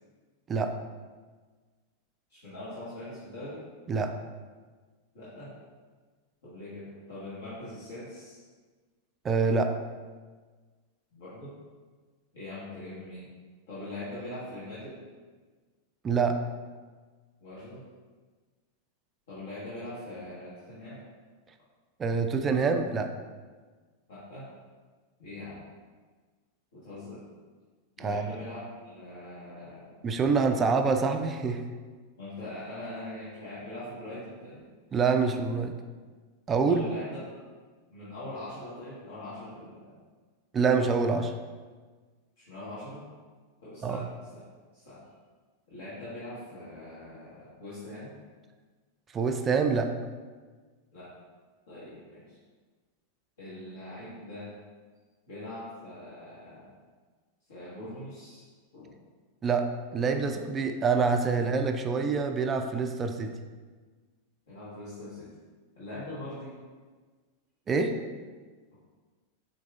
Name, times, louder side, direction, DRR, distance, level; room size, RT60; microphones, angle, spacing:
voice 1, 2.3-3.6 5.1-5.5 6.4-8.4 11.1-11.6 12.3-13.3 13.7-15.0 17.4-17.8 19.3-21.0 24.1-24.5 25.2-25.6 26.7-27.2 28.0-29.9 30.5-30.8 32.2-34.7 36.6-37.3 37.9-39.9 42.4-43.0 43.6-44.4 44.7-45.1 45.7-48.2 50.9-51.1 51.7-52.4 53.4-54.5 55.3-56.7 57.5-58.5 58.7-59.0 64.5-65.3 65.7-66.6, left 1 dB, 60° left, -11 dB, 1.2 m, -42 dB
voice 2, 9.2-9.7 16.0-16.4 22.0-23.1 28.0-28.3 30.0-31.6 34.9-35.7 36.5-36.9 40.5-41.3 43.8-44.1 49.1-49.9 59.4-59.7 59.9-63.3 67.7-67.9, right 5 dB, 20° right, 6 dB, 0.3 m, -26 dB
4.7 x 3.8 x 2.4 m, 1.4 s
figure-of-eight pair, 90°, 0 cm